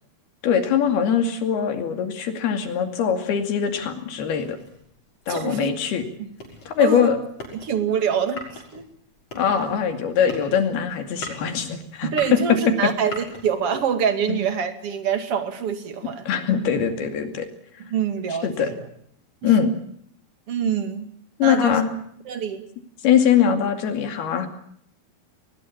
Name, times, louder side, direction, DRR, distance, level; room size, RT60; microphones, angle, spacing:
voice 1, 0.4-4.6 5.3-6.0 6.7-7.2 9.3-12.4 12.8-12.9 14.3-14.4 16.3-17.5 18.4-18.7 19.4-19.7 21.4-21.9 23.0-24.5, left 8 dB, 75° left, 7 dB, 4.4 m, -22 dB
sound 1, 4.3-14.0, left 2 dB, 40° left, 7.3 m, -41 dB
voice 2, 5.3-5.7 6.8-7.1 7.6-8.8 12.1-16.2 17.9-18.9 19.4-19.5 20.5-21.1 21.4-21.8 22.3-22.6, right 7 dB, 40° right, 8 dB, 2.7 m, -25 dB
21.0 x 20.5 x 8.6 m, 0.68 s
omnidirectional pair, 4.6 m